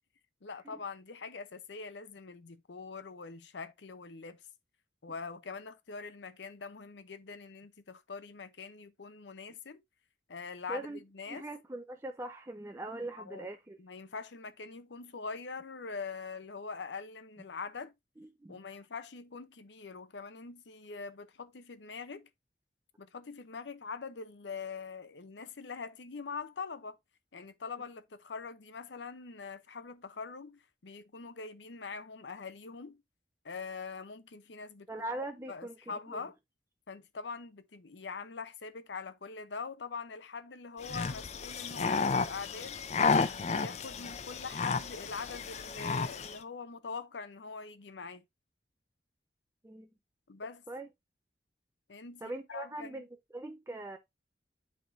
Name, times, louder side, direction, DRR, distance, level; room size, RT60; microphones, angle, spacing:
voice 1, 0.4-4.4 5.0-9.8 10.3-11.5 13.2-13.5 13.8-17.9 18.5-22.3 23.0-27.0 27.3-33.0 33.4-34.9 35.5-36.3 36.9-42.8 43.2-48.2 50.3-50.6 51.9-53.0, left 4 dB, 90° left, 0.7 m, -43 dB
voice 2, 10.7-11.0 11.3-13.8 18.2-18.6 34.9-36.2 49.6-49.9 50.7-50.9 52.2-53.1 53.3-54.0, right 2 dB, 15° right, 0.5 m, -41 dB
sound 1, 40.8-46.4, left 4 dB, 40° left, 0.5 m, -32 dB
10.5 x 3.6 x 2.6 m
head